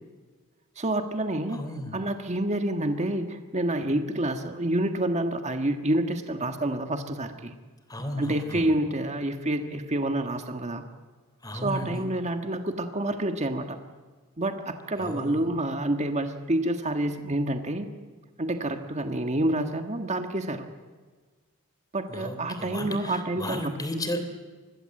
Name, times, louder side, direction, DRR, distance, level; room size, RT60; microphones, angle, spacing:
voice 1, 0.8-1.6 1.9-7.5 8.2-10.8 11.5-13.8 14.4-17.9 18.4-20.7 21.9-23.7, right 1 dB, 30° right, 6 dB, 1.5 m, -28 dB
voice 2, 1.5-2.0 7.9-8.8 11.4-12.0 15.0-15.4 22.1-24.2, left 1 dB, 20° left, 7 dB, 3.3 m, -34 dB
26.0 x 21.5 x 7.7 m, 1.4 s
head